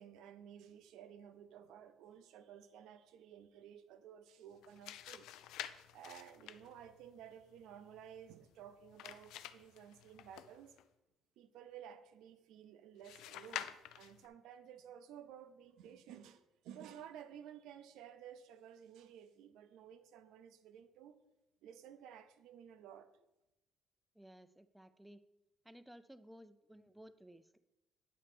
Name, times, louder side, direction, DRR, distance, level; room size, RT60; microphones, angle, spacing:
voice 1, 0.0-5.3 5.9-10.7 11.4-21.2 21.6-23.2, right 9 dB, 85° right, 11 dB, 0.6 m, -54 dB
sound 1, 4.5-10.8 13.0-14.3, left 12 dB, 85° left, 0.4 m, -50 dB
voice 2, 24.1-25.2 25.6-27.6, equal, 5° right, 13 dB, 0.3 m, -57 dB
9.6 x 4.3 x 5.1 m, 0.95 s
cardioid pair, 175°, 0 cm